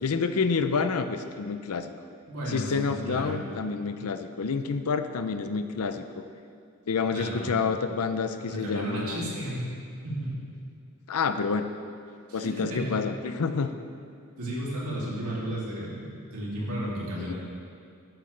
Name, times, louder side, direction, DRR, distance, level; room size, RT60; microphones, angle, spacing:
voice 1, 0.0-1.9 2.5-6.0 6.9-9.3 11.1-11.6 12.3-13.8 17.2-17.3, left 5 dB, 80° left, 9 dB, 0.6 m, -28 dB
voice 2, 2.3-3.4 7.1-7.5 8.5-9.7 10.0-10.4 12.3-13.0 14.4-17.3, right 1 dB, 75° right, -6 dB, 2.7 m, -33 dB
12.0 x 9.0 x 3.3 m, 2.4 s
head